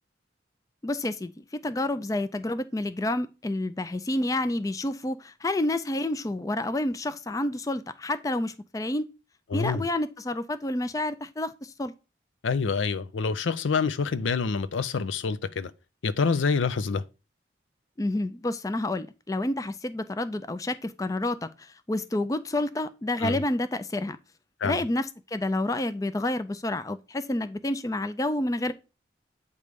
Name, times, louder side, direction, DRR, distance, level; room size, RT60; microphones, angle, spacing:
voice 1, 0.8-9.1 9.5-11.9 18.0-24.2 24.6-28.7, left 1 dB, 20° left, 0.4 m, -29 dB
voice 2, 9.5-9.9 12.4-15.7 16.0-17.0 23.2-23.4 24.6-24.8, left 5 dB, 90° left, 0.5 m, -27 dB
8.2 x 3.3 x 5.1 m
head